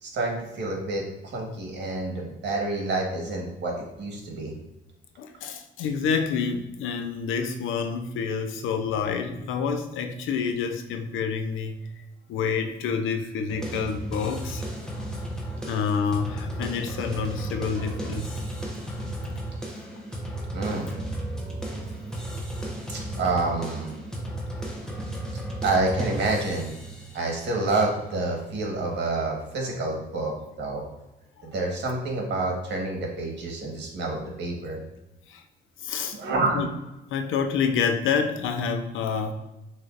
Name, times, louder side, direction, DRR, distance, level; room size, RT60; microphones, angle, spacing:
voice 1, 0.0-4.5 20.5-20.9 22.9-23.9 25.6-26.7 27.1-30.8 31.4-34.8 36.1-36.7, right 2 dB, 60° right, 0 dB, 1.5 m, -28 dB
voice 2, 5.2-11.8 12.3-14.6 15.7-18.4 35.3-35.4 35.8-36.2 36.5-36.7 37.1-39.3, left 6 dB, 80° left, 6 dB, 0.6 m, -28 dB
sound 1, 13.5-29.2, right 1 dB, 5° left, 1.1 m, -35 dB
6.5 x 3.0 x 2.5 m, 0.98 s
cardioid pair, 90°, 20 cm